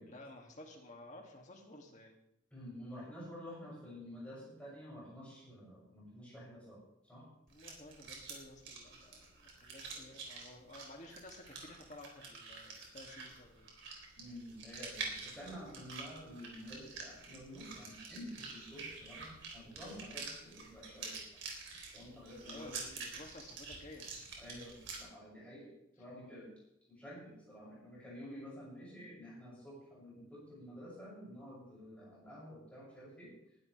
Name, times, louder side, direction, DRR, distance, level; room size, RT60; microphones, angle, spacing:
voice 1, 0.0-2.2 7.5-13.7 22.5-24.1, left 1 dB, 35° left, 1 dB, 2.4 m, -54 dB
voice 2, 2.5-7.2 9.9-10.1 14.2-21.2 21.9-22.8 24.4-26.5 26.9-33.3, equal, 5° left, -7 dB, 7.0 m, -50 dB
sound 1, 7.5-25.0, right 4 dB, 55° right, 3.7 m, -48 dB
20.5 x 12.0 x 3.4 m, 0.80 s
head